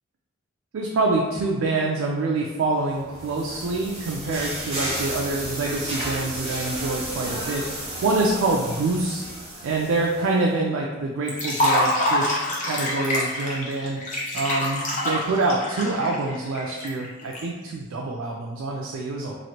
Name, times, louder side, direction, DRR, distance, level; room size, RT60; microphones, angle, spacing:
voice 1, 0.7-9.2 9.6-14.0 14.3-19.3, right 2 dB, 80° right, -1 dB, 0.4 m, -26 dB
sound 1, 2.8-10.4, right 1 dB, 30° right, 0.8 m, -33 dB
Liquid, 11.3-17.4, left 1 dB, 40° left, 0.6 m, -25 dB
3.0 x 2.5 x 2.8 m, 1.2 s
head